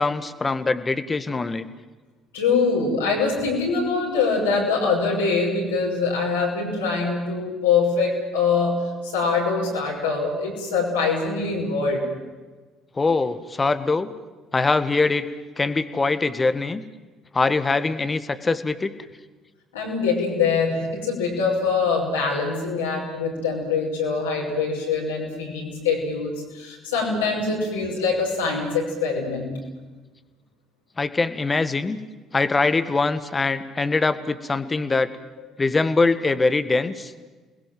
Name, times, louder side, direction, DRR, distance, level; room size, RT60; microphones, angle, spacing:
voice 1, 0.0-1.7 13.0-14.1 14.5-15.3 15.6-16.8 17.3-18.9 31.0-32.0 32.3-35.1 35.6-37.1, left 3 dB, 25° left, 12 dB, 1.7 m, -22 dB
voice 2, 2.3-12.1 19.7-29.5, left 4 dB, 80° left, -3 dB, 5.9 m, -24 dB
29.5 x 20.5 x 7.7 m, 1.3 s
figure-of-eight pair, 50°, 0 cm